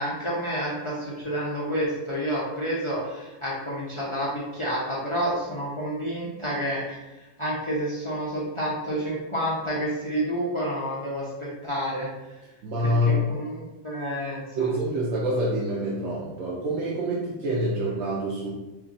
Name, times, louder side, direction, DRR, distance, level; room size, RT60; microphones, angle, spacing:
voice 1, 0.0-7.0 7.4-12.1 12.8-14.4, equal, 45° left, -7 dB, 0.4 m, -29 dB
voice 2, 12.6-13.2 14.6-18.5, equal, 65° right, -5 dB, 1.0 m, -26 dB
3.3 x 2.4 x 3.8 m, 1.1 s
omnidirectional pair, 1.5 m